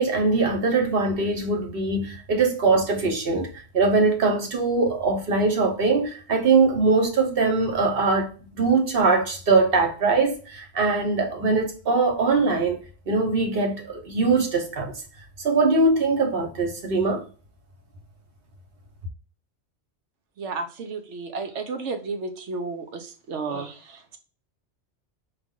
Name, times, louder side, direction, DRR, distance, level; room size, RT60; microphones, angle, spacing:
voice 1, 0.0-12.8 13.1-14.9 15.4-17.2, right 3 dB, 55° right, 1.1 m, -22 dB
voice 2, 20.4-24.2, right 4 dB, 80° right, 1.1 m, -32 dB
4.8 x 2.5 x 3.6 m
omnidirectional pair, 1.2 m